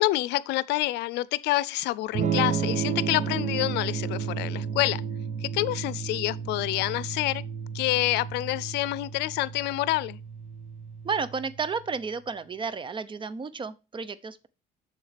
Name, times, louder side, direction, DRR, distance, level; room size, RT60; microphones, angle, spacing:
voice 1, 0.0-5.0 5.4-7.4 7.7-10.2, left 17 dB, 85° left, 0.5 m, -27 dB
Electric guitar / Strum, 2.1-11.9, right 7 dB, 45° right, 1.4 m, -32 dB
voice 2, 11.0-14.5, right 5 dB, 30° right, 0.8 m, -32 dB
7.2 x 7.2 x 5.0 m
cardioid pair, 110°, 17 cm